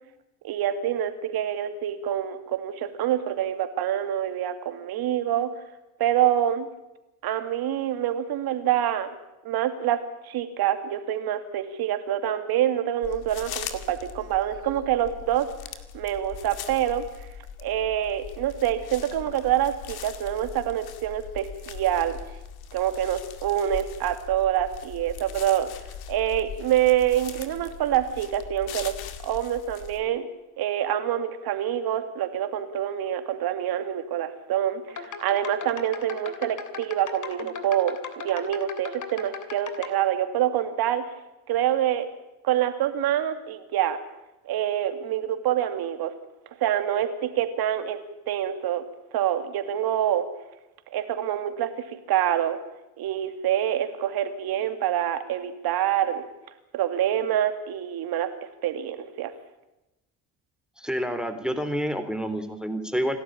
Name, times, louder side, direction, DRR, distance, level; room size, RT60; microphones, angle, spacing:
voice 1, 0.4-5.6 6.0-6.7 7.2-9.1 9.4-15.5 15.9-17.0 17.6-22.2 22.7-25.7 26.1-28.9 29.2-30.3 30.6-41.0 41.5-42.1 42.4-44.0 44.4-46.1 46.6-48.0 48.3-48.8 49.1-50.3 50.9-51.7 52.1-52.6 53.0-56.2 56.7-58.3 58.6-59.3, right 11 dB, 60° right, 9 dB, 2.7 m, -26 dB
sound 1, 13.0-30.0, left 8 dB, 60° left, 2.2 m, -40 dB
sound 2, 34.9-39.9, left 6 dB, 45° left, 3.0 m, -38 dB
voice 2, 60.8-63.2, equal, ahead, 7 dB, 3.5 m, -28 dB
27.5 x 13.0 x 8.9 m, 0.95 s
hypercardioid pair, 55°, 41 cm